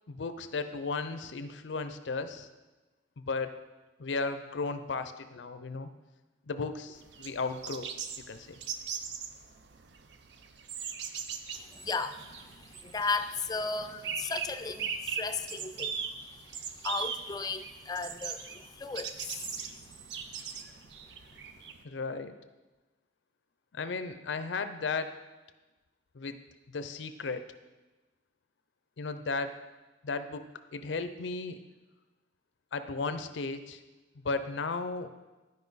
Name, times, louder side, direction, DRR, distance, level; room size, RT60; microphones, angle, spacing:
voice 1, 0.1-2.5 3.2-3.5 4.0-5.9 6.5-7.9 8.3-8.6 21.8-22.3 23.7-25.1 26.1-26.4 26.7-27.4 29.0-29.6 30.0-30.5 30.7-31.6 32.7-33.8 34.1-35.1, left 4 dB, 90° left, 10 dB, 0.6 m, -35 dB
sound 1, 6.9-21.8, right 6 dB, 75° right, 0.6 m, -40 dB
voice 2, 11.7-12.2 12.8-16.0 16.8-19.6, left 4 dB, 20° left, 9 dB, 0.4 m, -35 dB
11.5 x 5.4 x 4.0 m, 1.2 s
head